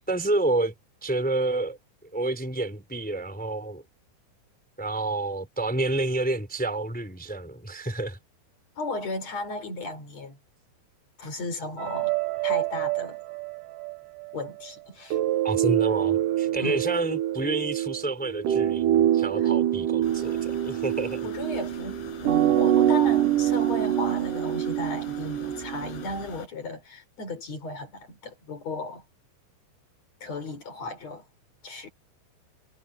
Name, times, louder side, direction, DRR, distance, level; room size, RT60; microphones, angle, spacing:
voice 1, 0.1-0.7 1.0-1.8 2.1-3.8 4.8-8.2 15.4-21.3, right 2 dB, ahead, 3.5 m, -29 dB
voice 2, 8.8-10.4 11.2-13.2 14.3-15.2 16.6-16.8 19.4-19.5 21.2-29.0 30.2-31.2 31.6-31.9, left 2 dB, 40° left, 4.5 m, -35 dB
sound 1, 11.8-14.6 15.1-26.1, right 12 dB, 85° right, 1.9 m, -25 dB
sound 2, 20.0-26.5, left 5 dB, 75° left, 7.7 m, -44 dB
omnidirectional pair, 5.3 m